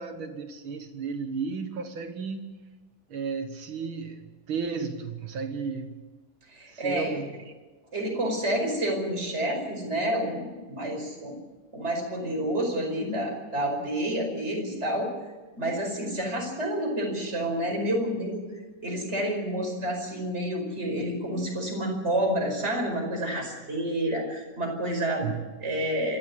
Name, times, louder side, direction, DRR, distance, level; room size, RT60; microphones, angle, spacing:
voice 1, 0.0-2.5 3.1-6.0 6.7-7.5 25.2-25.5, right 5 dB, 60° right, 1.4 m, -34 dB
voice 2, 6.5-7.2 7.9-11.3 11.7-15.1 15.6-18.5 18.8-25.3 25.6-26.2, right 1 dB, 20° right, 5.2 m, -29 dB
27.0 x 13.0 x 8.5 m
omnidirectional pair, 3.8 m